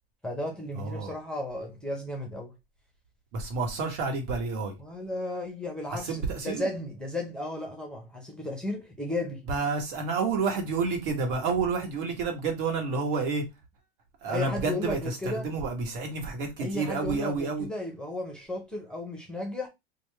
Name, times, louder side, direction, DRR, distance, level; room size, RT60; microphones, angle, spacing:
voice 1, 0.2-2.5 4.8-9.4 14.2-15.5 16.6-19.7, left 1 dB, 5° left, 0.8 m, -34 dB
voice 2, 0.7-1.1 3.3-4.7 5.9-6.7 9.5-13.4 14.2-17.7, right 4 dB, 55° right, 1.3 m, -29 dB
3.0 x 2.4 x 3.2 m
hypercardioid pair, 100°, 31 cm